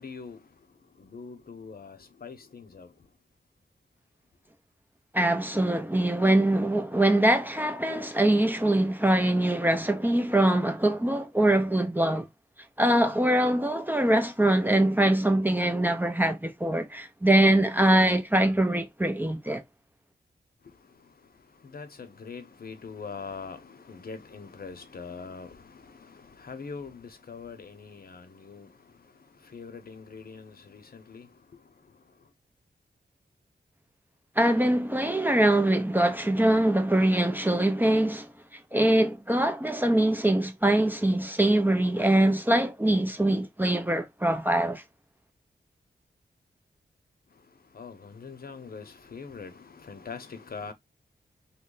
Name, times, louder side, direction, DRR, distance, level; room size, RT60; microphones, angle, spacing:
voice 1, 0.0-3.1 20.6-32.3 47.3-50.7, left 5 dB, 55° left, 0.8 m, -43 dB
voice 2, 5.1-12.3 12.8-19.6 34.4-38.3 38.7-44.8, right 1 dB, 10° right, 0.6 m, -23 dB
3.1 x 2.1 x 3.8 m
wide cardioid pair, 80°, 18 cm